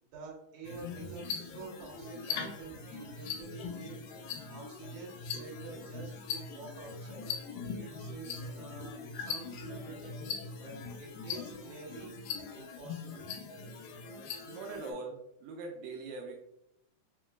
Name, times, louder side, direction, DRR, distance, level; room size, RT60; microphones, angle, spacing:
voice 1, 0.0-7.3 7.8-10.1 10.6-12.2 12.5-13.3, right 3 dB, 65° right, -4 dB, 2.2 m, -48 dB
sound 1, 0.6-14.9, left 5 dB, 85° left, 2.4 m, -41 dB
voice 2, 14.4-16.3, right 3 dB, 85° right, 0 dB, 2.2 m, -42 dB
5.3 x 3.0 x 2.3 m, 0.80 s
omnidirectional pair, 3.9 m